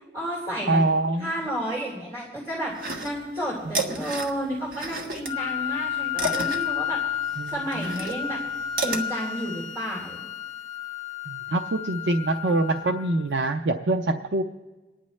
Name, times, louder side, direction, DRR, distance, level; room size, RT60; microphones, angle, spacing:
voice 1, 0.1-0.8 1.2-2.7 3.0-7.0 7.5-8.4 8.8-10.2, equal, 15° right, -5 dB, 3.3 m, -31 dB
voice 2, 0.7-1.3 7.4-7.5 7.9-8.0 11.3-14.4, right 2 dB, 80° right, 5 dB, 0.6 m, -24 dB
sound 1, 2.7-3.4 3.7-5.3 5.7-9.0, right 2 dB, 55° right, 1.3 m, -31 dB
Wind instrument woodwind instrument, 5.2-13.2, left 9 dB, 40° left, 0.8 m, -32 dB
29.0 x 10.0 x 3.2 m, 1.2 s
head